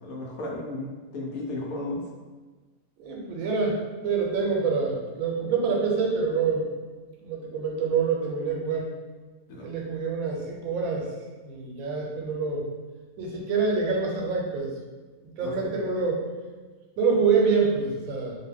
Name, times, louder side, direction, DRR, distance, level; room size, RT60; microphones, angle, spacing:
voice 1, 0.0-2.1 9.5-9.7 15.4-15.5, left 2 dB, 85° left, -2 dB, 1.1 m, -34 dB
voice 2, 3.0-6.6 7.2-8.9 9.6-11.1 11.4-12.6 13.2-14.7 15.2-16.3 17.0-18.4, right 5 dB, 80° right, -1 dB, 1.0 m, -26 dB
2.6 x 2.1 x 3.4 m, 1.3 s
omnidirectional pair, 1.5 m